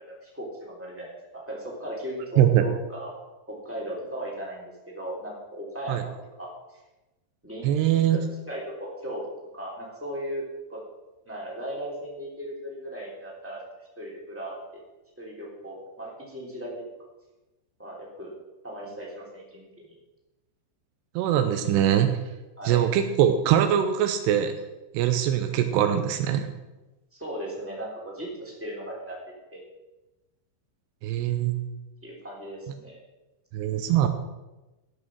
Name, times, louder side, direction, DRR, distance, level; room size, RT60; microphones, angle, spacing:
voice 1, 0.1-3.1 3.5-6.1 6.4-6.5 7.4-7.7 8.5-9.2 9.5-10.4 10.7-10.8 11.2-13.6 14.0-14.8 15.2-16.7 17.8-18.3 18.6-19.9 22.6-22.8 27.1-29.2 29.5-29.6 32.0-33.0, right 1 dB, 5° right, -4 dB, 1.8 m, -37 dB
voice 2, 7.6-8.2 21.2-22.1 22.7-24.5 24.9-26.5 31.0-31.6 33.5-34.1, right 10 dB, 85° right, 8 dB, 2.5 m, -22 dB
14.0 x 6.4 x 6.1 m, 1.1 s
omnidirectional pair, 5.5 m